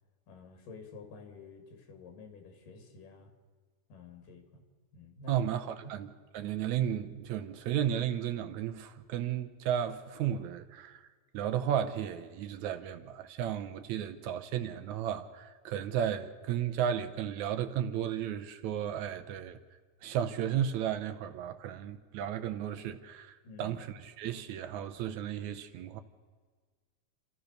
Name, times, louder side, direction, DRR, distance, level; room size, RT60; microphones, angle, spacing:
voice 1, 0.3-3.3 3.9-4.7 4.9-5.5 5.8-5.9 23.4-23.8, left 3 dB, 85° left, 4.0 m, -50 dB
voice 2, 5.3-6.1 6.3-11.1 11.3-19.6 20.0-26.0, right 9 dB, 70° right, 2.0 m, -34 dB
28.5 x 14.0 x 6.6 m
omnidirectional pair, 3.8 m